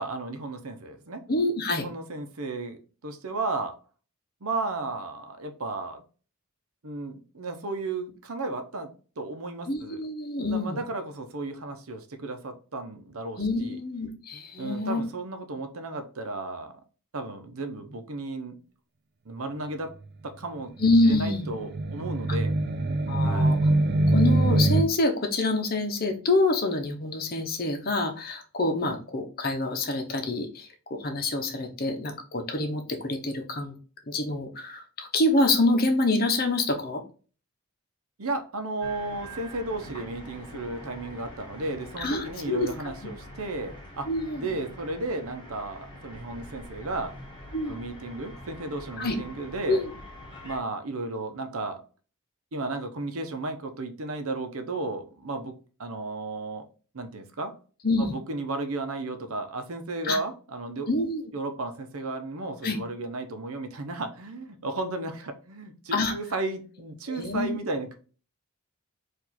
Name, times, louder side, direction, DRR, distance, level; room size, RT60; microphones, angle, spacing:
voice 1, 0.0-1.2 1.8-3.7 4.4-6.0 6.8-10.0 10.4-13.8 14.6-16.7 17.1-18.6 19.3-19.9 20.2-20.7 21.0-22.5 23.2-23.6 38.2-44.1 44.3-47.1 47.7-49.8 50.4-51.8 52.5-55.5 55.8-56.7 56.9-57.5 58.0-60.9 61.3-67.9, right 2 dB, 75° right, 7 dB, 0.8 m, -34 dB
voice 2, 1.3-1.9 9.7-10.8 13.4-15.0 20.8-21.5 23.1-23.6 24.1-33.7 34.1-37.0 42.0-42.9 44.1-44.5 47.5-47.8 49.0-49.1 49.7-49.9 57.8-58.1 60.0-60.2 60.9-61.2 62.6-62.8 65.9-66.1 67.1-67.6, left 2 dB, 40° left, 5 dB, 0.8 m, -26 dB
sound 1, 20.8-24.8, right 2 dB, 45° right, 0.4 m, -24 dB
sound 2, 38.8-50.6, equal, 20° left, 1.2 m, -44 dB
4.8 x 2.6 x 4.1 m, 0.38 s
head